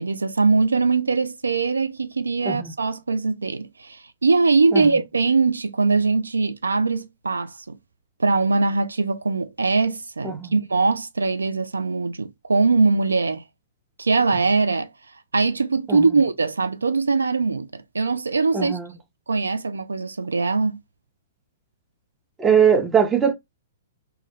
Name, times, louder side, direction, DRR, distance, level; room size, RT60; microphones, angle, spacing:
voice 1, 0.0-7.8 8.2-13.4 14.0-14.9 15.3-18.8 19.3-20.8, right 4 dB, 85° right, 0.3 m, -21 dB
voice 2, 18.5-18.9 22.4-23.3, right 7 dB, 15° right, 0.6 m, -20 dB
2.2 x 2.2 x 3.1 m
figure-of-eight pair, 115°, 0 cm